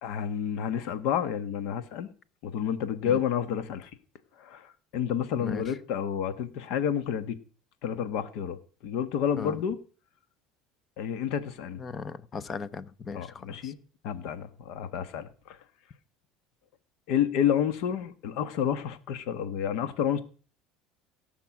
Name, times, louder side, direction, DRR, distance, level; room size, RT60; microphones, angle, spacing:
voice 1, 0.0-2.1 2.4-3.9 4.4-7.4 7.8-9.8 11.0-11.8 13.1-13.8 14.0-15.6 17.1-20.2, left 9 dB, 70° left, 12 dB, 1.4 m, -30 dB
voice 2, 5.3-5.8 9.4-9.6 11.8-13.7, left 5 dB, 30° left, 17 dB, 0.8 m, -38 dB
18.0 x 6.0 x 6.0 m, 0.41 s
supercardioid pair, 115°, 0 cm